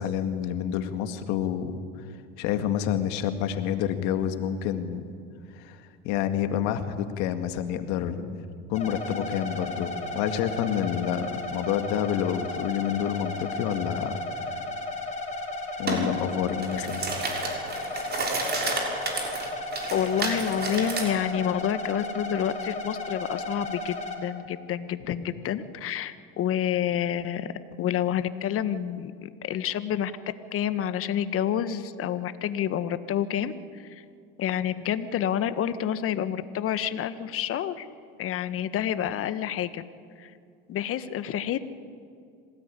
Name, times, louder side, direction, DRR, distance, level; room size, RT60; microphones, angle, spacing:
voice 1, 0.0-1.7 2.0-2.1 2.4-5.0 5.6-8.4 8.7-14.2 14.5-14.6 15.8-17.1, left 9 dB, 70° left, 8 dB, 2.1 m, -28 dB
sound 1, 8.7-24.2, left 2 dB, 25° left, 5.3 m, -34 dB
sound 2, 15.9-16.0 16.5-21.1, right 3 dB, 35° right, 6.5 m, -31 dB
voice 2, 19.9-27.5 27.8-30.1 30.5-34.0 34.4-37.9 38.2-39.8 40.2-40.3 40.7-41.6, left 10 dB, 50° left, 12 dB, 1.5 m, -28 dB
26.0 x 17.5 x 10.0 m, 2.3 s
supercardioid pair, 90°, 30 cm